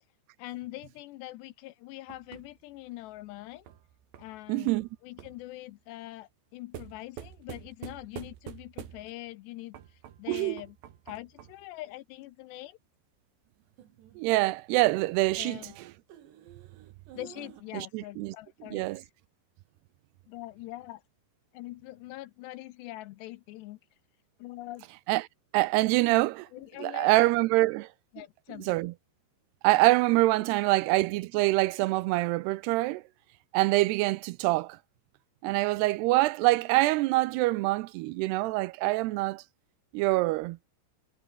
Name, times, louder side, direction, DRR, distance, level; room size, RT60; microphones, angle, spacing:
voice 1, 0.4-3.7 4.2-10.8 11.1-12.8 15.4-15.8 17.1-19.1 20.3-21.0 21.5-23.8 24.4-24.9 26.1-27.1 28.1-28.8 30.6-30.7, left 17 dB, 80° left, 2.7 m, -43 dB
sound 1, 2.1-5.5 6.7-9.3 9.7-11.7 13.8-17.6, right 10 dB, 70° right, 4.3 m, -48 dB
voice 2, 4.5-4.9 10.3-10.6 14.2-15.6 17.7-18.3 18.7-19.0 25.1-25.2 25.5-26.5 26.8-27.9 28.7-28.9 29.6-33.0 33.5-34.8 35.4-39.4 39.9-40.6, right 20 dB, 85° right, 2.4 m, -25 dB
omnidirectional pair, 5.3 m